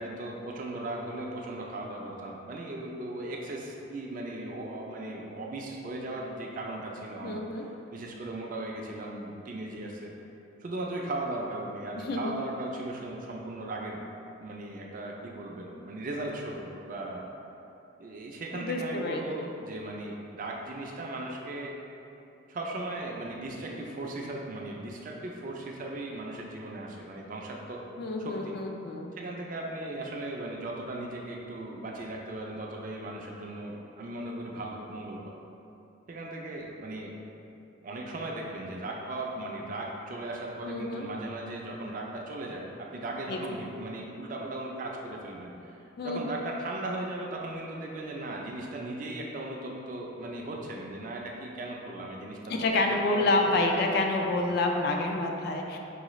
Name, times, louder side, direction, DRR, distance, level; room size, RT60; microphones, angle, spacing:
voice 1, 0.0-10.1 10.6-14.0 14.4-17.3 18.0-21.7 22.5-27.8 28.2-28.6 29.1-35.3 36.1-37.1 37.8-45.8 46.0-53.3 54.1-54.4, right 2 dB, 40° right, -1 dB, 0.4 m, -37 dB
voice 2, 7.2-7.7 12.0-12.4 18.5-19.5 28.0-29.1 40.7-41.0 43.3-43.6 46.0-46.4 52.5-55.8, left 2 dB, 50° left, 2 dB, 0.3 m, -28 dB
4.8 x 2.3 x 3.0 m, 2.8 s
head